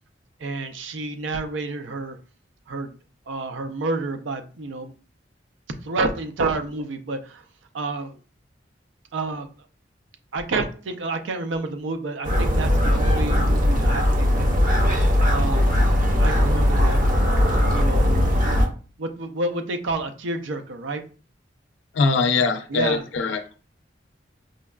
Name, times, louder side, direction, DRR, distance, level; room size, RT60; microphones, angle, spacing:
voice 1, 0.4-2.2 2.7-2.9 3.3-4.9 5.8-7.4 7.7-8.2 9.1-9.5 10.3-14.5 15.3-15.8 16.2-17.0 17.7-18.2 19.0-21.0 22.7-23.0, right 2 dB, 90° right, 0.5 m, -29 dB
sound 1, 12.2-18.7, left 1 dB, 45° right, 0.6 m, -19 dB
voice 2, 22.0-23.4, left 4 dB, 75° left, 0.4 m, -21 dB
5.1 x 2.2 x 2.3 m
head